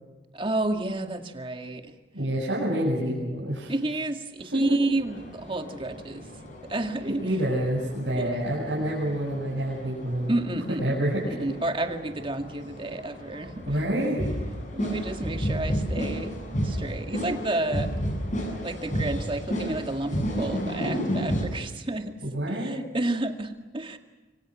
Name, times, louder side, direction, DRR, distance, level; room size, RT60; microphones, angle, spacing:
voice 1, 0.3-1.9 3.7-6.2 6.6-7.2 8.1-8.3 10.3-13.6 14.7-16.4 16.6-17.9 18.6-22.1 22.5-24.0, right 2 dB, 30° right, 6 dB, 2.0 m, -30 dB
voice 2, 2.1-3.7 4.5-4.8 7.2-10.3 10.8-11.3 13.7-14.2 22.2-22.8, right 1 dB, 80° right, -5 dB, 7.4 m, -27 dB
sound 1, 4.9-21.5, equal, 45° left, 7.5 m, -32 dB
26.0 x 25.5 x 6.2 m, 1.2 s
head